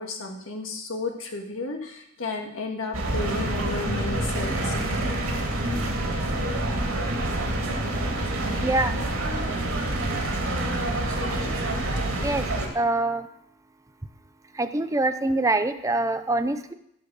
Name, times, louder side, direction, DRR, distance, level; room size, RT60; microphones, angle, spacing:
voice 1, 0.0-5.1, left 3 dB, 70° left, 2 dB, 1.7 m, -33 dB
sound 1, 2.9-12.7, right 1 dB, 80° right, 2.5 m, -27 dB
voice 2, 8.6-9.0 12.2-12.5 12.7-13.3 14.5-16.7, right 2 dB, 15° right, 9 dB, 0.6 m, -24 dB
15.0 x 5.2 x 6.4 m, 0.73 s
head